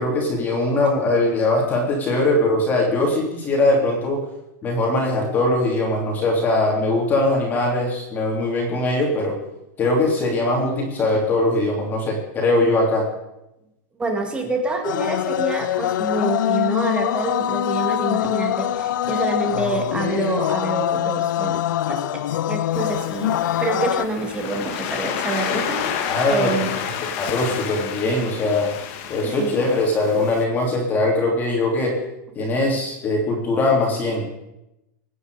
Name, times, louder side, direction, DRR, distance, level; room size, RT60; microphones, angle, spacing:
voice 1, 0.0-4.2 4.6-9.3 9.8-13.0 26.0-26.6 27.2-28.7 29.1-31.9 32.3-34.3, left 2 dB, 15° left, -1 dB, 3.2 m, -21 dB
voice 2, 14.0-21.6 21.9-22.2 22.5-26.7 29.2-29.6, right 3 dB, 10° right, 3 dB, 2.1 m, -27 dB
sound 1, 14.8-24.1, left 12 dB, 70° left, 0.6 m, -23 dB
Waves surf, 22.7-30.4, left 8 dB, 40° left, 1.7 m, -30 dB
25.0 x 9.6 x 4.9 m, 0.90 s
supercardioid pair, 165°, 11 cm